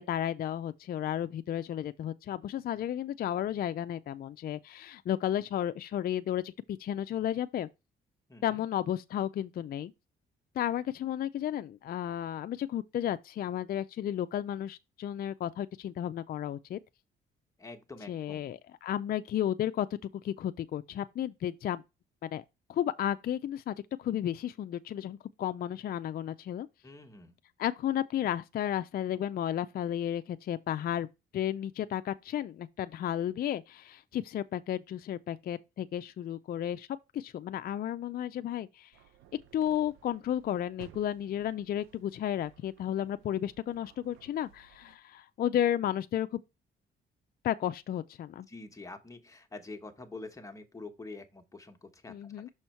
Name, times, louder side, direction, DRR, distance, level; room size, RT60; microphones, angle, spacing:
voice 1, 0.1-7.7 8.4-9.9 10.6-16.8 18.1-19.9 20.2-21.8 22.2-22.4 22.7-26.7 27.6-31.1 31.3-36.9 37.1-38.9 39.5-46.4 47.4-48.5 52.1-52.5, left 11 dB, 50° left, 0.4 m, -33 dB
voice 2, 8.3-8.6 17.6-18.5 26.8-27.3 48.3-52.5, left 3 dB, 15° left, 1.2 m, -46 dB
sound 1, 38.9-45.0, right 11 dB, 85° right, 0.8 m, -58 dB
6.3 x 4.3 x 4.4 m
cardioid pair, 90°, 20 cm